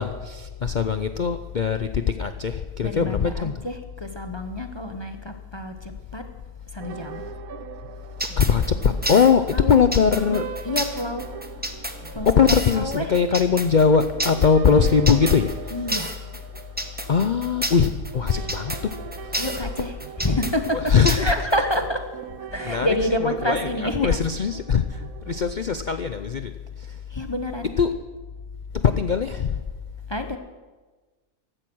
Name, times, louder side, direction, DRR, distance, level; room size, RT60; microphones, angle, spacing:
voice 1, 0.0-3.7 8.4-10.4 12.4-15.6 17.1-18.9 20.9-21.3 22.7-22.9 23.2-26.5 27.8-27.9 28.8-29.6, left 6 dB, 60° left, 9 dB, 0.4 m, -21 dB
voice 2, 2.8-6.3 6.7-7.2 9.5-9.7 10.3-11.3 12.1-13.2 15.7-16.1 18.3-18.5 19.3-22.1 22.5-24.2 27.1-27.7 30.1-30.4, left 1 dB, 20° left, 6 dB, 0.8 m, -28 dB
sound 1, 6.8-25.4, right 9 dB, 75° right, 1.3 m, -40 dB
sound 2, 8.2-21.8, right 1 dB, 5° right, 1.0 m, -30 dB
15.5 x 13.5 x 6.2 m, 1.3 s
omnidirectional pair, 1.6 m